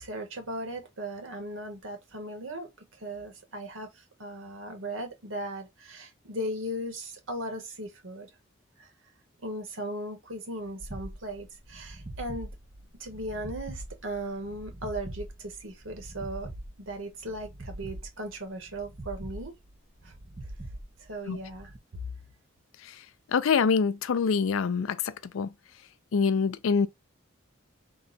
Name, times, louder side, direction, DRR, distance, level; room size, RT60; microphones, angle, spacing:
voice 1, 0.0-8.3 8.8-8.9 9.4-12.5 13.0-16.5 16.8-19.5 20.0-20.1 21.0-22.1, right 1 dB, 80° right, 1.2 m, -37 dB
sound 1, 10.8-21.8, right 1 dB, 30° right, 0.5 m, -43 dB
voice 2, 23.3-25.0 25.3-25.5 26.1-26.9, left 5 dB, 80° left, 0.4 m, -24 dB
3.8 x 2.2 x 3.8 m
head